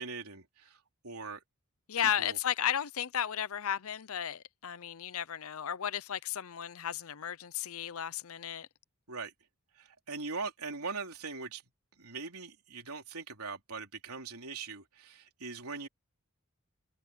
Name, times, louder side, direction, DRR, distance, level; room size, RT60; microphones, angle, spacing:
voice 1, 0.0-1.4 2.0-2.4 9.1-9.3 9.7-11.6 12.0-15.9, right 4 dB, 90° right, 3.5 m, -41 dB
voice 2, 1.9-8.7, left 9 dB, 75° left, 0.7 m, -34 dB
head